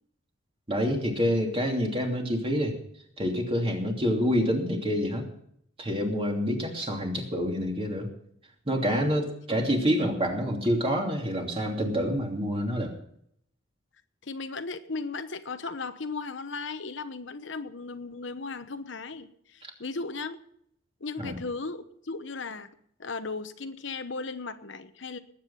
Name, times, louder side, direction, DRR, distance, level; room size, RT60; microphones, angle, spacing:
voice 1, 0.7-2.8 3.2-5.3 5.8-8.1 8.7-12.9 19.6-19.7 21.2-21.4, equal, 30° right, 1 dB, 2.9 m, -27 dB
voice 2, 14.2-20.4 21.0-22.7 23.0-25.2, left 4 dB, 70° left, 10 dB, 1.0 m, -36 dB
19.5 x 8.7 x 5.6 m, 0.70 s
head